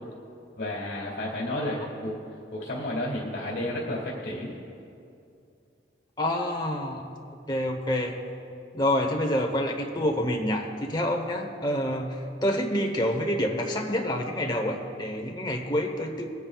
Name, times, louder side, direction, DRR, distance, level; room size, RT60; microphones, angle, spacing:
voice 1, 0.6-2.2 2.5-4.5, left 1 dB, 60° left, -6 dB, 2.2 m, -31 dB
voice 2, 6.2-7.0 7.5-8.2 8.7-16.3, left 1 dB, 25° left, 2 dB, 1.0 m, -27 dB
22.0 x 9.6 x 2.4 m, 2.5 s
head